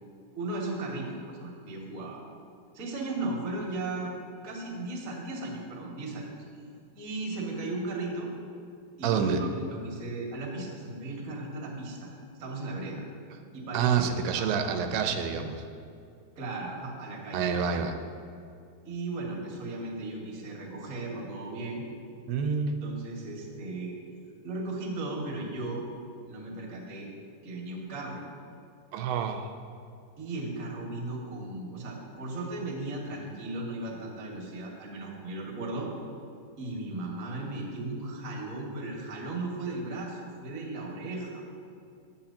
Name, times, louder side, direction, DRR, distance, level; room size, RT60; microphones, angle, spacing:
voice 1, 0.3-2.2 2.7-4.2 4.4-6.3 6.9-8.3 9.0-12.1 12.4-13.0 13.5-14.7 16.3-17.8 18.8-21.9 22.8-24.0 24.4-25.8 26.3-27.1 27.4-28.2 30.2-35.9 36.6-41.4, right 2 dB, 35° right, -2 dB, 1.3 m, -36 dB
voice 2, 9.0-9.4 13.7-15.6 17.3-17.9 22.3-22.8 28.9-29.5, right 7 dB, 80° right, 6 dB, 2.7 m, -27 dB
16.5 x 10.5 x 2.9 m, 2.4 s
omnidirectional pair, 4.7 m